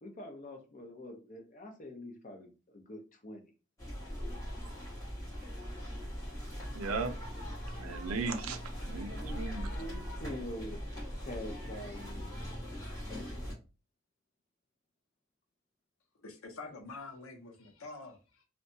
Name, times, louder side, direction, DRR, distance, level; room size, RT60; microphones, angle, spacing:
voice 1, 0.0-3.5 9.1-9.4 9.7-10.8 11.2-12.3, left 1 dB, 40° left, 0.6 m, -45 dB
sound 1, 3.8-13.5, equal, 15° left, 1.3 m, -40 dB
voice 2, 6.7-7.1 7.8-8.6 8.9-9.7, right 4 dB, 85° right, 0.5 m, -36 dB
voice 3, 16.2-18.4, left 3 dB, 75° left, 0.7 m, -47 dB
2.6 x 2.2 x 2.6 m
head